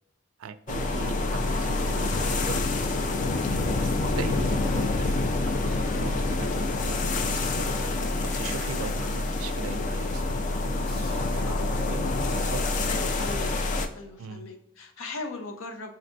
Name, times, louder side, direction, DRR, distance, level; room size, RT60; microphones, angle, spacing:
voice 1, 0.4-7.0 7.2-10.3 10.6-10.8 11.1-13.0 14.2-14.5, right 5 dB, 80° right, 12 dB, 0.3 m, -40 dB
sound 1, 0.7-13.9, left 2 dB, 40° left, 0.4 m, -27 dB
sound 2, 10.6-12.2, left 2 dB, 55° left, 1.3 m, -51 dB
voice 2, 12.9-13.5 13.9-15.9, left 3 dB, 80° left, 6 dB, 0.6 m, -38 dB
3.9 x 2.6 x 3.3 m, 0.82 s
head